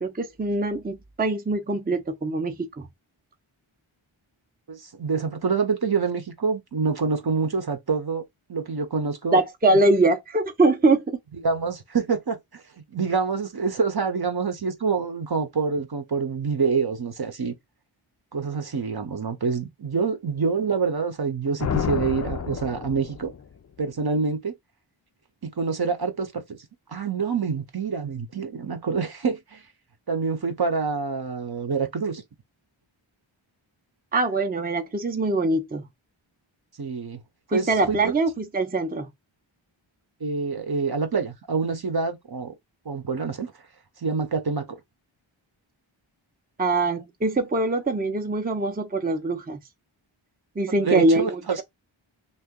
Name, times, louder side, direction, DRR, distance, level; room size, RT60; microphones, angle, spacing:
voice 1, 0.0-2.9 9.3-11.2 34.1-35.9 37.5-39.1 46.6-49.6 50.6-51.6, right 2 dB, 20° right, 0.6 m, -23 dB
voice 2, 4.7-8.2 8.5-9.4 9.7-9.8 11.3-12.6 12.9-17.5 18.3-23.3 23.8-24.5 25.4-26.6 26.9-29.6 30.1-32.2 36.8-37.2 37.5-38.1 40.2-42.5 42.9-43.5 44.0-44.8 50.8-51.6, right 5 dB, 50° right, 0.8 m, -26 dB
sound 1, 21.6-23.6, left 7 dB, 35° left, 0.4 m, -29 dB
2.8 x 2.4 x 3.6 m
wide cardioid pair, 45°, 49 cm